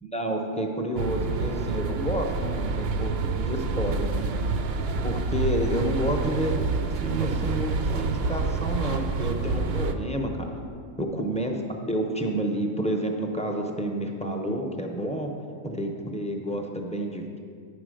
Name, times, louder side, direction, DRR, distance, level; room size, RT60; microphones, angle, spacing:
voice 1, 0.0-4.3 5.0-6.5 7.0-10.5 11.0-11.6 11.9-15.3 15.6-17.4, right 1 dB, 10° left, 1 dB, 0.4 m, -29 dB
sound 1, 1.0-9.9, right 4 dB, 60° right, 0.7 m, -27 dB
9.5 x 5.0 x 6.3 m, 2.3 s
omnidirectional pair, 1.3 m